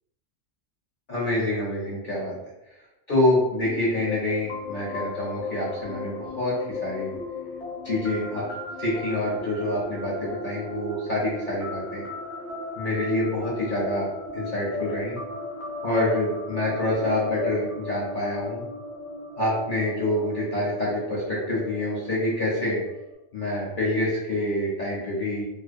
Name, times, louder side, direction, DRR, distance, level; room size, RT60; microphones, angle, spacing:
voice 1, 1.1-2.3 3.1-7.1 7.8-8.4 8.8-12.0 12.8-14.1 14.3-15.2 15.8-18.6 19.4-22.8 23.3-25.4, left 1 dB, 50° left, -7 dB, 0.8 m, -26 dB
sound 1, 3.6-23.1, left 3 dB, 65° left, 1.1 m, -36 dB
2.6 x 2.0 x 2.4 m, 0.92 s
omnidirectional pair, 1.3 m